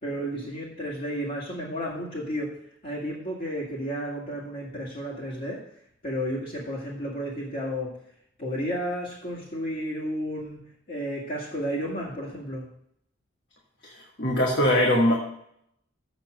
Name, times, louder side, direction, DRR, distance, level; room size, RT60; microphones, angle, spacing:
voice 1, 0.0-8.0 8.4-12.7, equal, 45° left, -7 dB, 2.2 m, -32 dB
voice 2, 14.2-15.1, left 1 dB, 60° left, -1 dB, 1.6 m, -21 dB
7.7 x 7.3 x 6.5 m, 0.73 s
head